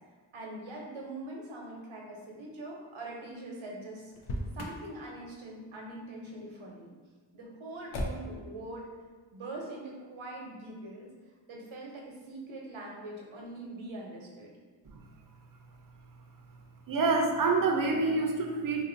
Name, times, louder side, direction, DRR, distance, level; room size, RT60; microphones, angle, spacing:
voice 1, 0.3-4.1 4.5-6.9 7.3-8.9 9.3-11.1 11.5-14.5, right 2 dB, 75° right, -2 dB, 0.9 m, -43 dB
Motor vehicle (road), 4.1-4.9 7.9-8.5, left 1 dB, 85° left, 0.6 m, -35 dB
voice 2, 16.9-18.8, right 3 dB, 45° right, 2 dB, 0.6 m, -27 dB
2.6 x 2.6 x 3.8 m, 1.4 s
cardioid pair, 40°, 47 cm